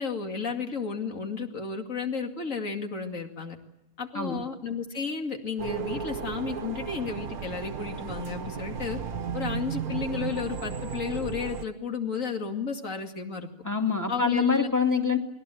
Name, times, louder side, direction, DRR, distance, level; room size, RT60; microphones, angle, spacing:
voice 1, 0.0-3.6 4.0-9.0 9.3-13.5 14.1-14.7, left 5 dB, 60° left, 4 dB, 2.7 m, -33 dB
sound 1, 5.6-11.6, right 6 dB, 90° right, 1.8 m, -34 dB
voice 2, 13.6-15.2, left 5 dB, 10° left, 3 dB, 2.4 m, -25 dB
27.5 x 21.0 x 7.8 m, 0.92 s
omnidirectional pair, 1.5 m